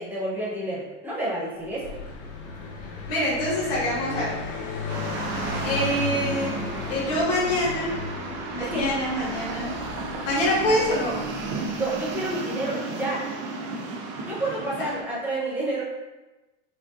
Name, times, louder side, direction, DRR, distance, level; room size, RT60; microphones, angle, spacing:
voice 1, 0.0-1.9 8.6-8.9 11.8-13.2 14.2-15.8, right 1 dB, 5° right, -8 dB, 0.9 m, -29 dB
Car passing by, 1.6-12.2, left 4 dB, 85° left, 0.9 m, -35 dB
voice 2, 3.1-4.3 5.6-6.5 6.9-8.0 8.5-9.7 10.2-11.2 14.8-14.9, left 1 dB, 40° left, -9 dB, 1.3 m, -25 dB
sound 1, 4.9-15.0, right 3 dB, 35° right, 0.4 m, -34 dB
4.9 x 2.2 x 2.6 m, 1.1 s
supercardioid pair, 160°, 39 cm